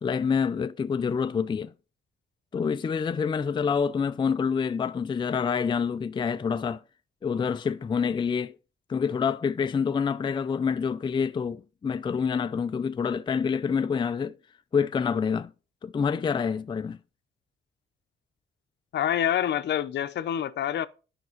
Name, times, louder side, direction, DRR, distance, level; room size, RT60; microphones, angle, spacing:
voice 1, 0.0-1.7 2.5-6.8 7.2-8.5 8.9-14.4 14.7-15.5 15.8-17.0, left 6 dB, 25° left, 0.4 m, -27 dB
voice 2, 18.9-20.9, left 10 dB, 60° left, 0.7 m, -27 dB
9.6 x 5.9 x 4.5 m
cardioid pair, 90°, 20 cm